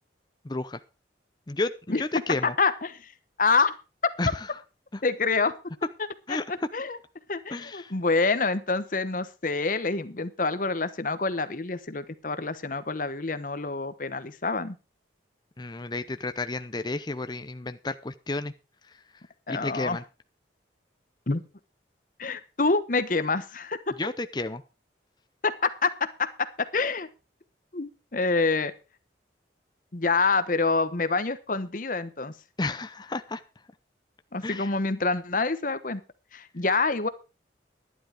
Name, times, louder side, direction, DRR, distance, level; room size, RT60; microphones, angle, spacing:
voice 1, 0.4-0.8 1.5-2.5 4.2-4.5 4.9-5.0 6.3-6.4 7.5-7.9 15.6-18.5 18.9-19.0 19.5-20.0 24.0-24.6 32.6-33.4 34.4-34.7, left 2 dB, 25° left, 10 dB, 0.7 m, -32 dB
voice 2, 2.4-3.1 3.4-3.7 5.0-5.5 6.3-6.4 6.7-7.0 7.3-14.7 19.5-20.0 21.3-21.4 22.2-23.8 25.4-27.1 27.7-28.7 29.9-32.3 34.3-36.0 36.3-37.1, left 4 dB, 50° left, 13 dB, 1.0 m, -27 dB
12.0 x 10.5 x 4.9 m, 0.31 s
head